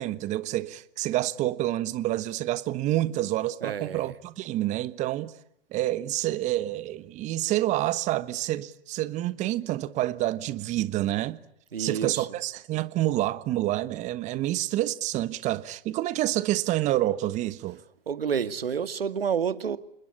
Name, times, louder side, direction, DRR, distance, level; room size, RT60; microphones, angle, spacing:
voice 1, 0.0-5.3 5.7-11.4 11.8-17.8, right 15 dB, 25° right, 1.2 m, -28 dB
voice 2, 3.6-4.1 11.7-12.4 18.1-19.8, right 7 dB, 80° right, 2.2 m, -29 dB
28.0 x 21.0 x 9.9 m
hypercardioid pair, 130°, 29 cm